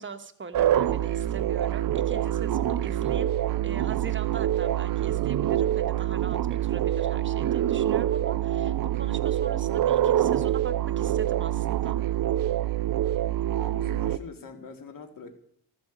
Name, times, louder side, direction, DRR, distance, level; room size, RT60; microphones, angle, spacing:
voice 1, 0.0-3.4 3.6-11.9, right 5 dB, 30° right, 8 dB, 1.1 m, -41 dB
sound 1, 0.5-14.2, right 12 dB, 55° right, 0.6 m, -26 dB
voice 2, 13.6-15.3, left 5 dB, 55° left, 6 dB, 2.0 m, -44 dB
14.0 x 13.5 x 5.0 m, 0.67 s
cardioid pair, 125°, 39 cm